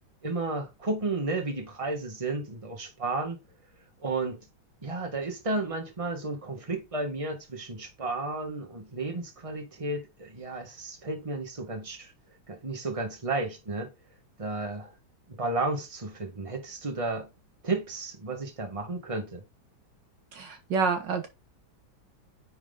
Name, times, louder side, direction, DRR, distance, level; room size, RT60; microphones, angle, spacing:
voice 1, 0.2-3.4 4.0-4.4 4.8-12.1 12.5-13.9 14.4-14.9 15.3-17.3 17.6-19.4, right 3 dB, 15° right, 1.7 m, -32 dB
voice 2, 20.3-21.3, right 5 dB, 65° right, 1.7 m, -28 dB
9.6 x 4.6 x 3.9 m
omnidirectional pair, 2.2 m